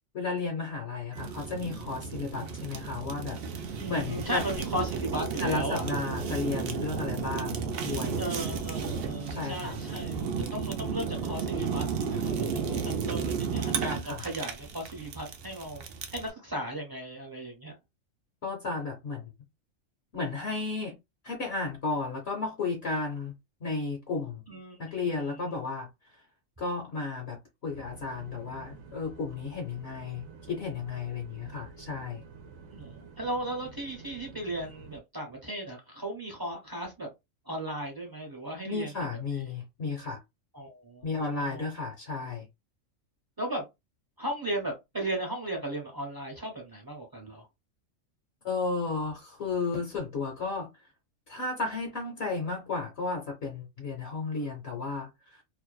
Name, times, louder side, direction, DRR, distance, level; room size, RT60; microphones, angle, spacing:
voice 1, 0.1-4.4 5.4-8.2 9.3-9.8 14.1-14.2 18.4-19.3 20.1-20.9 21.2-23.3 23.6-24.4 24.8-25.9 26.6-32.2 38.6-40.2 41.0-42.5 48.4-50.7 51.3-55.4, left 3 dB, 60° left, 0.9 m, -33 dB
Fire, 1.1-16.3, right 5 dB, 65° right, 0.6 m, -33 dB
voice 2, 3.7-6.0 8.2-15.8 16.1-17.7 24.5-25.4 32.7-37.1 37.5-39.1 40.5-41.7 43.4-43.7 44.2-47.4, right 1 dB, 20° right, 0.7 m, -36 dB
sound 1, 27.7-35.0, right 4 dB, 85° right, 1.0 m, -49 dB
2.6 x 2.2 x 2.2 m
omnidirectional pair, 1.4 m